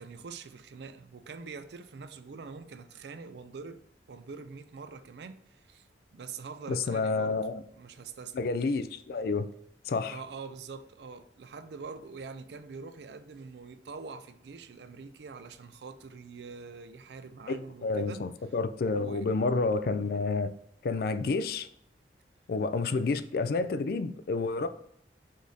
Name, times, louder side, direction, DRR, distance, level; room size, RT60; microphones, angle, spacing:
voice 1, 0.0-3.8 4.1-5.9 6.1-7.4 7.7-8.4 10.1-18.2 19.0-19.3 22.8-23.0, right 5 dB, 70° right, 0.4 m, -44 dB
voice 2, 6.7-7.6 8.3-9.5 9.9-10.2 17.5-20.5 20.8-21.7 22.5-24.7, left 3 dB, 55° left, 0.3 m, -29 dB
5.0 x 2.7 x 3.8 m
head